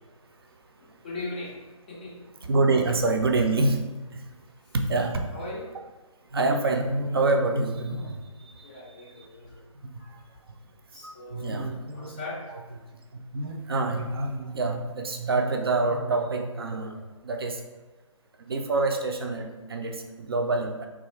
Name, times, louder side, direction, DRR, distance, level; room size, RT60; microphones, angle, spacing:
voice 1, 0.8-1.6 1.9-2.3 5.3-5.7 8.6-9.6 10.0-10.2 10.9-11.6 11.9-12.4, left 2 dB, 15° left, -4 dB, 0.4 m, -39 dB
voice 2, 2.4-3.8 4.1-4.3 4.7-5.2 6.3-8.7 9.0-9.2 9.8-9.9 11.3-12.2 12.5-12.6 13.3-17.6 18.4-20.9, right 3 dB, 45° right, 3 dB, 0.4 m, -26 dB
3.9 x 2.4 x 3.1 m, 1.2 s
figure-of-eight pair, 150°, 17 cm